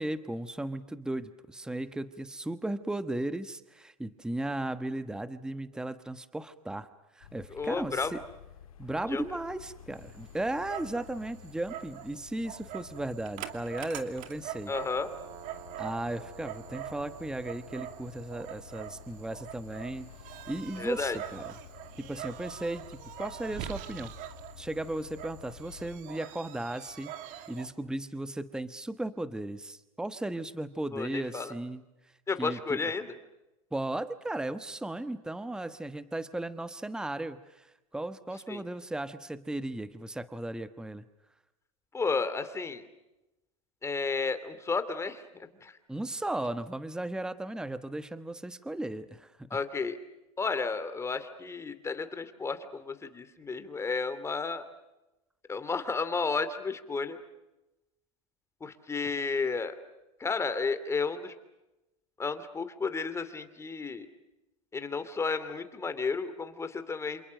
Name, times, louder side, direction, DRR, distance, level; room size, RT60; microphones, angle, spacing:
voice 1, 0.0-6.9 7.1-8.2 8.8-14.7 15.8-20.1 20.5-21.5 22.0-24.1 24.6-31.8 32.4-32.9 33.7-41.0 45.9-49.6, right 1 dB, 5° right, 12 dB, 1.2 m, -36 dB
sound 1, 7.2-26.0, left 9 dB, 90° left, 2.9 m, -52 dB
voice 2, 7.5-8.1 9.1-9.2 14.7-15.1 20.8-21.2 30.9-31.5 32.3-33.1 38.5-38.6 41.9-42.8 43.8-45.8 49.5-50.0 50.4-54.6 55.5-57.2 58.6-59.8 60.2-61.3 62.2-64.1 64.7-67.2, left 4 dB, 15° left, 11 dB, 2.8 m, -32 dB
Dog, 9.9-27.7, right 12 dB, 50° right, 2.6 m, -44 dB
27.5 x 27.5 x 6.5 m, 0.98 s
hypercardioid pair, 115°, 18 cm